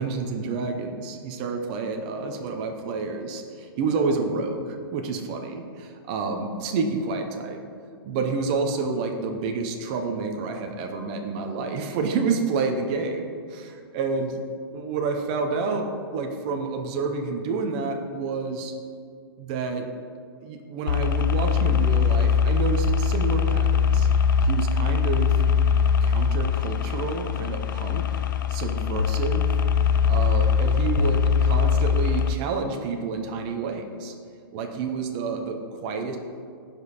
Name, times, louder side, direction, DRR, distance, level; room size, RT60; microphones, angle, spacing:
voice 1, 0.0-7.6 8.0-14.4 14.7-15.9 16.1-18.7 19.4-19.9 20.4-24.1 24.4-25.4 26.0-28.0 28.5-29.6 29.9-34.1 34.5-36.2, right 4 dB, 20° right, 4 dB, 0.6 m, -29 dB
sound 1, 20.9-32.3, left 6 dB, 50° left, 0.4 m, -22 dB
15.0 x 5.2 x 4.1 m, 2.3 s
hypercardioid pair, 175°, 13 cm